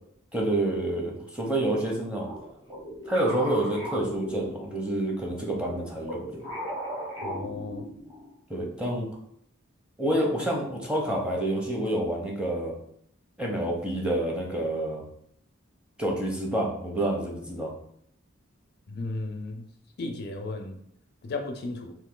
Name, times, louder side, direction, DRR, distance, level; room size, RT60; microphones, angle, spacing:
voice 1, 0.3-2.3 3.1-6.4 8.5-9.1 10.0-12.7 13.4-15.0 16.0-17.7, right 1 dB, 5° right, -1 dB, 0.7 m, -28 dB
sound 1, 2.2-5.0 5.6-8.3, equal, 20° right, 1.0 m, -37 dB
voice 2, 7.2-7.8 18.9-19.7 20.0-20.8 21.2-22.0, left 2 dB, 55° left, 4 dB, 0.5 m, -34 dB
3.1 x 2.6 x 3.7 m, 0.69 s
head